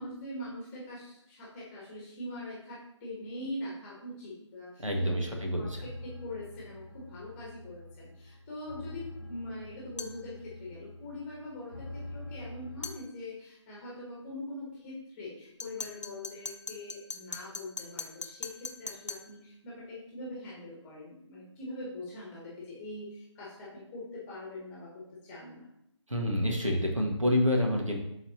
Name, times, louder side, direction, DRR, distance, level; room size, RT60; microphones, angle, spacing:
voice 1, 0.0-25.7, left 1 dB, 10° left, -6 dB, 1.2 m, -43 dB
voice 2, 4.8-5.8 26.1-28.0, left 1 dB, 85° right, 1 dB, 1.6 m, -28 dB
sound 1, 5.6-12.9, left 1 dB, 45° right, 2.9 m, -46 dB
sound 2, 10.0-10.2 12.8-13.0 15.6-19.3, left 3 dB, 70° left, 0.8 m, -41 dB
11.5 x 4.0 x 2.8 m, 0.78 s
figure-of-eight pair, 150°, 16 cm